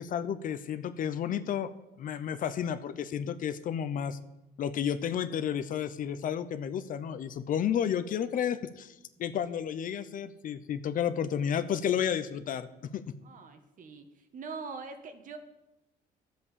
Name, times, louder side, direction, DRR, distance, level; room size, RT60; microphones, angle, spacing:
voice 1, 0.0-1.7 2.0-4.2 4.6-8.9 9.2-13.1, left 8 dB, 55° left, 12 dB, 0.8 m, -31 dB
voice 2, 13.2-14.1 14.3-15.4, right 4 dB, 50° right, 7 dB, 1.6 m, -42 dB
11.0 x 7.8 x 6.9 m, 0.94 s
cardioid pair, 110°, 17 cm